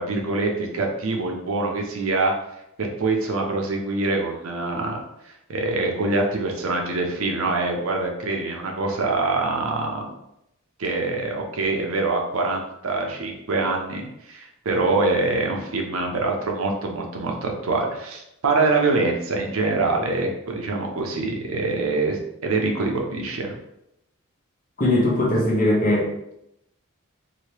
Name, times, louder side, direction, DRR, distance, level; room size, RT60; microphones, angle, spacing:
voice 1, 0.0-2.3 2.8-5.0 5.5-10.1 10.8-23.5, right 3 dB, 70° right, 1 dB, 0.6 m, -24 dB
voice 2, 24.8-26.4, left 1 dB, 35° left, -3 dB, 0.9 m, -20 dB
2.9 x 2.7 x 3.1 m, 0.81 s
head